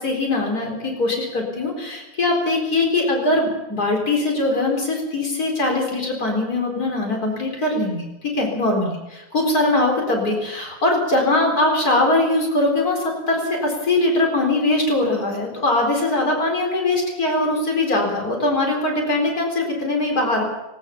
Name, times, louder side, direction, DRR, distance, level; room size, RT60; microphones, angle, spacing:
voice 1, 0.0-8.0 8.3-20.4, left 2 dB, 80° left, 1 dB, 4.9 m, -21 dB
20.5 x 19.5 x 7.1 m, 0.99 s
omnidirectional pair, 1.6 m